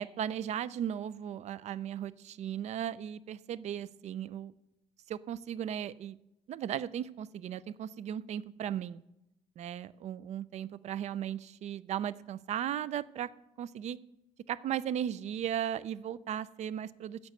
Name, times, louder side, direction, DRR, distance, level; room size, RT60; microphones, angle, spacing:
voice 1, 0.0-4.5 5.1-6.2 6.5-9.0 9.6-13.3 13.6-14.0 14.5-17.3, right 10 dB, 50° right, 19 dB, 0.4 m, -36 dB
9.7 x 8.0 x 6.6 m, 0.92 s
cardioid pair, 115°, 15 cm